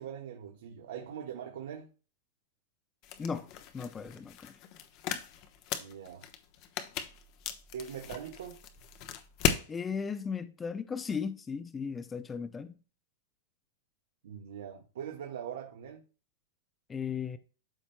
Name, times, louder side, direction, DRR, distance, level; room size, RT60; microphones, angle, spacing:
voice 1, 0.0-1.9 5.8-6.3 7.7-8.6 14.2-16.0, right 8 dB, 75° right, 1.4 m, -42 dB
sound 1, 3.0-9.7, left 8 dB, 45° left, 0.9 m, -37 dB
voice 2, 3.2-4.6 9.7-12.8 16.9-17.4, left 6 dB, 15° left, 0.5 m, -36 dB
12.5 x 4.3 x 2.2 m
hypercardioid pair, 140°, 0 cm